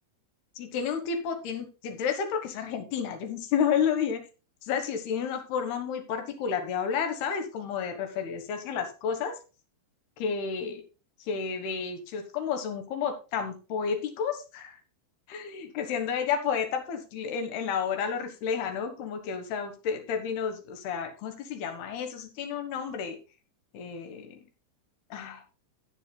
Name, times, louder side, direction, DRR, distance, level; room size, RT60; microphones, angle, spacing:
voice 1, 0.6-4.3 4.6-9.4 10.2-10.8 11.3-14.8 15.3-23.2 23.7-24.4 25.1-25.4, left 7 dB, 65° left, 7 dB, 2.7 m, -31 dB
15.0 x 8.4 x 2.2 m, 0.32 s
omnidirectional pair, 5.9 m